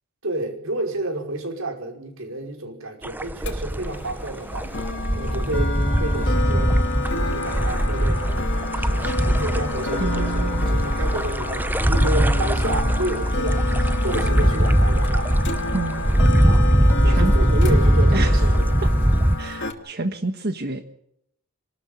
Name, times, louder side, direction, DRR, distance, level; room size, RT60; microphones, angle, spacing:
voice 1, 0.2-4.7 5.1-6.8 7.1-15.3 16.4-16.7 17.0-18.7, right 1 dB, 75° right, 4 dB, 5.4 m, -30 dB
sound 1, 3.0-19.4, equal, 10° right, 0.8 m, -20 dB
sound 2, 3.4-19.7, left 3 dB, 60° left, 2.7 m, -30 dB
voice 2, 10.0-11.0 15.7-16.0 17.0-17.3 18.1-18.4 19.4-21.0, right 2 dB, 50° right, 7 dB, 1.5 m, -29 dB
27.0 x 13.0 x 8.9 m, 0.75 s
head